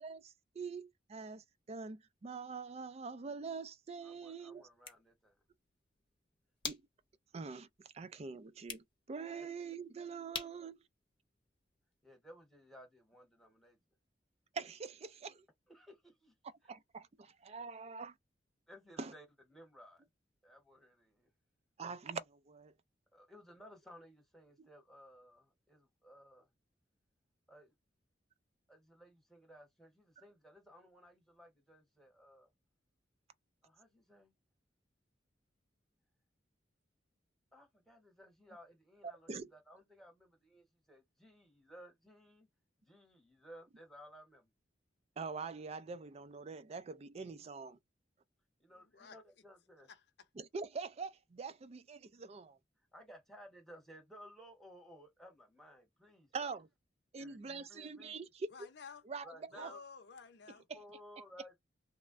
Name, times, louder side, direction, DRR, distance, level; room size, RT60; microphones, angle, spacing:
voice 1, 0.0-4.6 6.6-6.8 7.3-7.7 7.9-10.8 14.5-15.4 16.7-18.1 19.0-19.1 21.8-22.7 24.6-24.7 39.0-39.5 45.2-47.8 50.4-52.6 56.3-56.7 57.1-58.3 59.1-59.7, right 5 dB, 35° right, 0.4 m, -44 dB
voice 2, 4.0-5.4 12.0-13.8 15.7-16.3 18.7-20.0 20.4-21.3 23.1-26.5 27.5-27.7 28.7-32.5 33.6-34.3 37.5-42.5 42.8-44.5 48.6-49.9 52.9-56.6 57.2-58.2 59.2-59.8 60.5-61.6, equal, ahead, 1.0 m, -58 dB
sound 1, 4.6-12.0, left 5 dB, 25° left, 0.7 m, -50 dB
voice 3, 48.7-49.2 49.9-50.0 58.5-59.0 59.5-60.7, left 5 dB, 65° left, 0.6 m, -52 dB
3.1 x 2.1 x 2.4 m
head